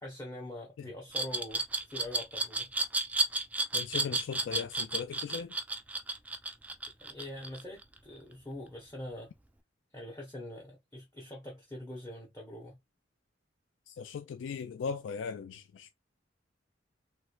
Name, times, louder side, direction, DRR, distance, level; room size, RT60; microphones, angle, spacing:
voice 1, 0.0-2.7 7.0-9.3 9.9-12.8, left 1 dB, 20° left, 0.8 m, -44 dB
Glass, 1.1-8.0, right 2 dB, 10° right, 0.3 m, -32 dB
voice 2, 3.7-5.6 13.9-15.9, left 6 dB, 85° left, 0.3 m, -38 dB
3.1 x 3.0 x 2.2 m
head